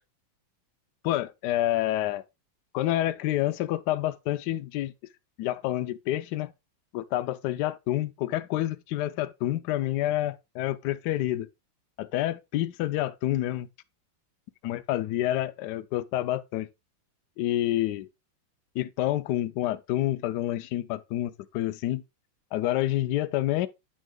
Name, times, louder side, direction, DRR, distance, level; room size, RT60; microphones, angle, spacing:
voice 1, 1.0-2.2 2.7-4.9 5.4-6.5 6.9-11.5 12.0-13.7 14.6-16.7 17.4-18.1 18.8-22.0 22.5-23.7, left 14 dB, 85° left, 0.9 m, -28 dB
9.4 x 6.3 x 2.2 m
omnidirectional pair, 2.4 m